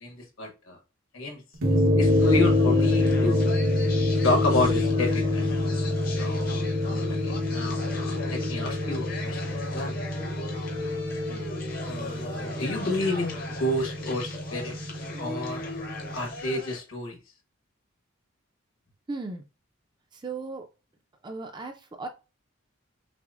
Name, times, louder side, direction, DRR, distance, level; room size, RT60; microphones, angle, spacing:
voice 1, 0.0-0.8 1.1-1.4 1.7-3.5 4.1-5.6 6.2-10.0 11.9-14.8 15.2-15.6 16.1-17.2, left 2 dB, 75° left, 1 dB, 1.3 m, -30 dB
sound 1, 1.6-16.2, left 2 dB, 85° right, 1.0 m, -26 dB
sound 2, 2.0-16.8, left 2 dB, 45° left, 0.7 m, -38 dB
voice 2, 6.9-7.3 11.3-11.5 19.1-19.4 20.1-20.7 21.2-22.1, right 3 dB, 20° right, 5 dB, 0.4 m, -37 dB
5.9 x 2.0 x 2.4 m, 0.30 s
head